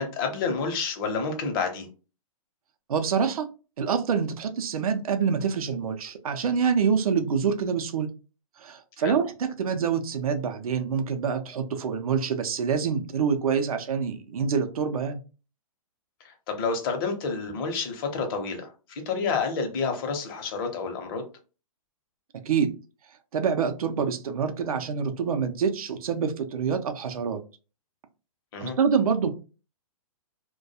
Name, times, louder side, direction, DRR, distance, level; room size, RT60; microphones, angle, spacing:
voice 1, 0.0-1.9 9.0-9.1 16.2-21.2 28.5-28.8, left 4 dB, 40° left, 4 dB, 0.7 m, -29 dB
voice 2, 2.9-3.5 3.8-8.1 8.6-15.2 22.5-22.7 23.3-27.4 28.6-29.3, right 6 dB, 80° right, 7 dB, 0.5 m, -26 dB
2.3 x 2.2 x 2.7 m, 0.33 s
hypercardioid pair, 145°, 18 cm